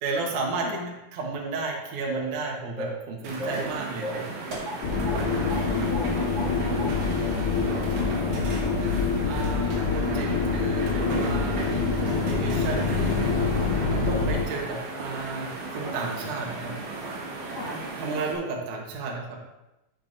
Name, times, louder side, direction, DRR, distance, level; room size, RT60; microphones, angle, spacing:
voice 1, 0.0-0.8 1.1-4.2 6.6-7.0 8.8-8.9 9.2-10.9 11.1-13.2 13.9-16.7 18.0-19.5, right 3 dB, 70° right, -1 dB, 1.9 m, -33 dB
voice 2, 0.6-0.9 5.3-7.7 17.4-17.9, left 3 dB, 85° left, -4 dB, 1.8 m, -36 dB
sound 1, 2.1-2.4 2.8-3.1 3.4-3.7 4.0-5.2 5.5-5.7 5.9-6.5 6.8-7.0, equal, 40° right, 2.5 m, -35 dB
sound 2, 3.2-18.4, right 3 dB, 90° right, 3.9 m, -35 dB
sound 3, 4.8-14.4, left 4 dB, 65° left, 2.6 m, -26 dB
12.5 x 6.0 x 2.6 m, 0.95 s
omnidirectional pair, 5.2 m